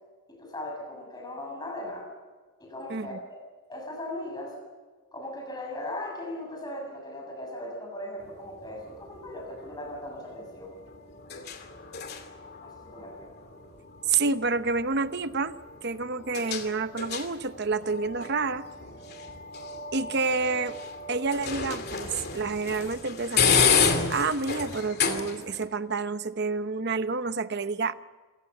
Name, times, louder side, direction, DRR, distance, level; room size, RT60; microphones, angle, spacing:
voice 1, 0.3-2.1 2.6-3.4 3.7-4.6 5.1-10.8 12.6-13.4, left 1 dB, 20° left, 0 dB, 6.7 m, -38 dB
sound 1, 8.2-25.7, left 6 dB, 45° left, 2.6 m, -31 dB
voice 2, 14.1-15.5 15.8-18.7 19.9-20.8 21.1-27.9, right 4 dB, 50° right, 12 dB, 0.9 m, -29 dB
27.5 x 17.5 x 6.8 m, 1.4 s
head